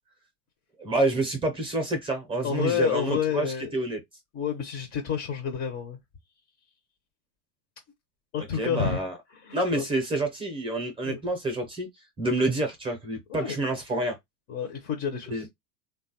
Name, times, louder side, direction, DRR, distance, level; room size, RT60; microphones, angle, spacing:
voice 1, 0.8-3.5 3.7-4.0 8.6-9.1 9.5-11.9 12.2-14.2 15.3-15.5, right 2 dB, 10° right, 0.6 m, -28 dB
voice 2, 2.4-3.7 4.3-6.0 8.3-9.0 9.3-9.9 11.0-11.2 13.3-13.6 14.5-15.5, left 8 dB, 30° left, 0.5 m, -29 dB
3.2 x 2.3 x 2.7 m
supercardioid pair, 130°, 45 cm